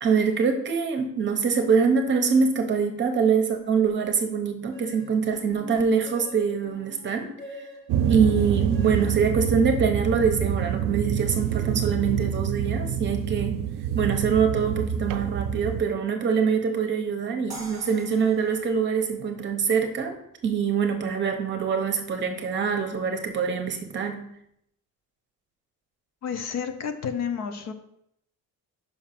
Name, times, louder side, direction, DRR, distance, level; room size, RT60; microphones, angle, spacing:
voice 1, 0.0-7.3 8.1-13.6 13.9-20.2 20.4-24.3, right 6 dB, 35° right, 5 dB, 0.9 m, -24 dB
sound 1, 4.7-10.5, left 2 dB, 30° left, 2.5 m, -46 dB
sound 2, 7.9-15.8, right 9 dB, 75° right, 0.6 m, -27 dB
sound 3, 17.5-20.6, right 1 dB, 10° right, 1.3 m, -46 dB
voice 2, 26.2-27.7, left 7 dB, 55° left, 8 dB, 0.7 m, -30 dB
5.7 x 5.0 x 5.8 m, 0.75 s
cardioid pair, 175°, 33 cm